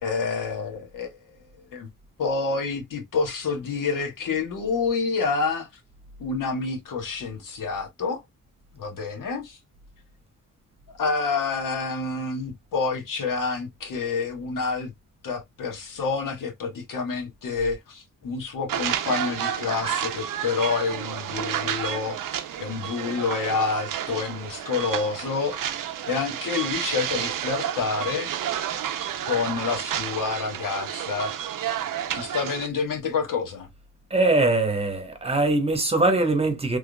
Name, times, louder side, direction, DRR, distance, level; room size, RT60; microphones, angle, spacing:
voice 1, 0.0-1.2 1.7-1.9 2.2-5.7 6.2-8.2 8.7-9.6 11.0-14.9 15.2-25.7 26.1-28.3 29.3-31.3 32.1-33.7, left 4 dB, 80° left, 1.4 m, -28 dB
sound 1, 18.7-32.7, right 10 dB, 85° right, 0.6 m, -30 dB
voice 2, 34.1-36.8, right 2 dB, 20° right, 1.0 m, -22 dB
3.5 x 3.4 x 2.2 m
wide cardioid pair, 135°, 32 cm